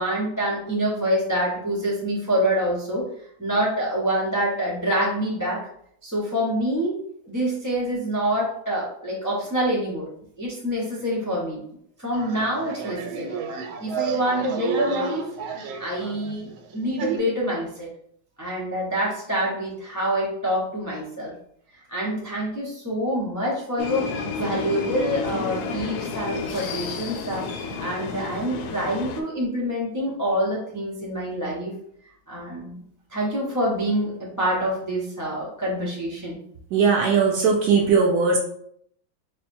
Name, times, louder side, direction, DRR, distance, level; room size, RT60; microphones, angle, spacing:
voice 1, 0.0-3.1 3.4-5.7 6.0-6.9 7.3-10.1 10.4-11.6 12.0-13.3 13.8-15.2 15.5-17.9 18.4-21.3 21.7-31.7 32.3-32.8 33.1-36.4, equal, 30° left, -5 dB, 0.3 m, -26 dB
sound 1, 12.1-17.2, right 6 dB, 90° right, 1.4 m, -32 dB
sound 2, 23.8-29.2, left 4 dB, 75° left, 0.9 m, -31 dB
voice 2, 36.7-38.4, right 5 dB, 70° right, -1 dB, 1.0 m, -19 dB
4.2 x 2.1 x 4.3 m, 0.70 s
omnidirectional pair, 2.1 m